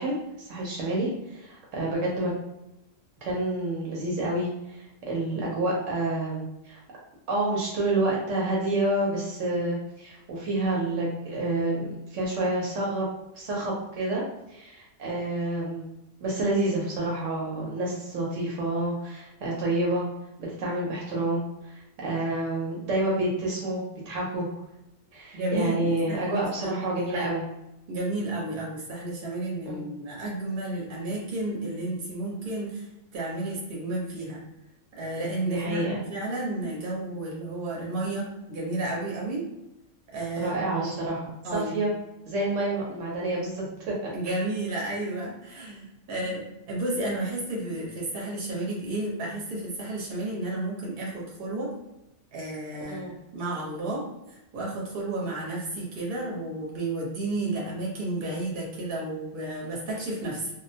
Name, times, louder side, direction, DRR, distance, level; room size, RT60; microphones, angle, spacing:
voice 1, 0.0-2.3 3.2-6.8 7.3-13.1 13.3-15.9 16.2-20.1 20.4-24.5 25.1-27.4 29.7-29.8 35.4-36.0 40.4-41.2 41.5-41.9 42.3-43.9 44.2-44.3 52.9-53.1, right 2 dB, 75° right, -4 dB, 1.0 m, -28 dB
voice 2, 25.3-26.8 27.1-27.4 27.9-32.8 33.1-34.4 35.0-39.5 40.1-40.9 41.4-41.8 44.1-51.7 52.3-60.5, right 2 dB, 50° right, -4 dB, 0.9 m, -32 dB
2.3 x 2.1 x 2.7 m, 0.90 s
omnidirectional pair, 1.3 m